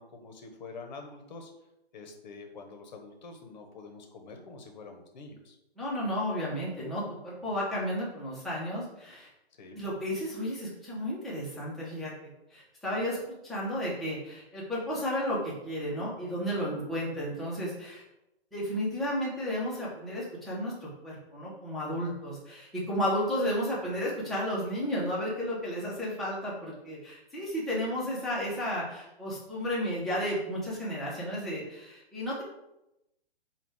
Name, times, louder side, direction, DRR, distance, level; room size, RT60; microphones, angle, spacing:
voice 1, 0.0-1.5 1.9-5.6 9.6-9.7, left 3 dB, 45° left, 4 dB, 0.8 m, -46 dB
voice 2, 5.8-9.3 9.7-13.2 13.4-18.0 18.5-32.4, equal, ahead, -8 dB, 0.6 m, -33 dB
4.8 x 2.3 x 3.5 m, 0.89 s
figure-of-eight pair, 125°, 31 cm